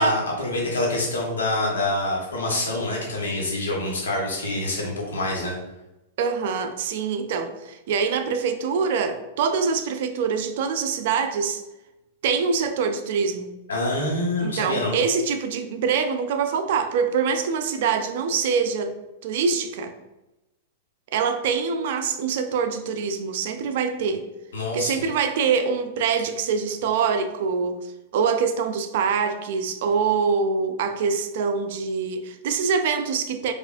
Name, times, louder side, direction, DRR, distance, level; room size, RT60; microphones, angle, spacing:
voice 1, 0.0-5.5 13.7-14.9 24.5-24.9, left 2 dB, 85° left, -2 dB, 1.2 m, -26 dB
voice 2, 6.2-11.6 12.2-13.5 14.4-18.9 19.2-19.9 21.1-24.3 24.7-33.5, right 5 dB, 65° right, 8 dB, 0.4 m, -24 dB
4.6 x 2.5 x 2.5 m, 0.97 s
hypercardioid pair, 115°, 0 cm